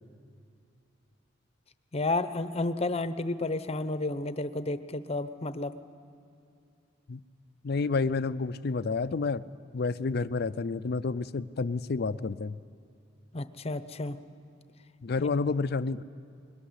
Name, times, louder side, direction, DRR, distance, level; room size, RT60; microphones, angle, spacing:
voice 1, 1.9-5.7 13.3-14.2 15.2-15.3, left 2 dB, 35° left, 12 dB, 0.8 m, -31 dB
voice 2, 7.6-12.6 15.0-16.0, left 4 dB, 55° left, 14 dB, 0.5 m, -30 dB
22.0 x 20.5 x 9.8 m, 2.5 s
head